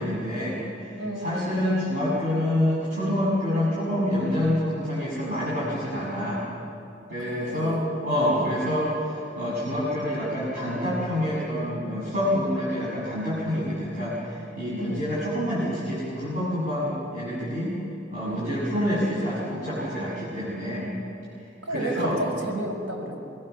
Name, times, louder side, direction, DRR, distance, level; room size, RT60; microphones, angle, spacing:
voice 1, 0.0-6.5 7.1-17.7 18.1-20.9 21.7-22.2, left 1 dB, 40° right, -9 dB, 7.5 m, -27 dB
voice 2, 1.0-1.5 7.2-7.9 8.3-8.6 14.8-15.1 18.3-18.5 21.6-23.2, right 1 dB, 70° right, 1 dB, 5.3 m, -32 dB
25.5 x 21.0 x 7.1 m, 2.7 s
head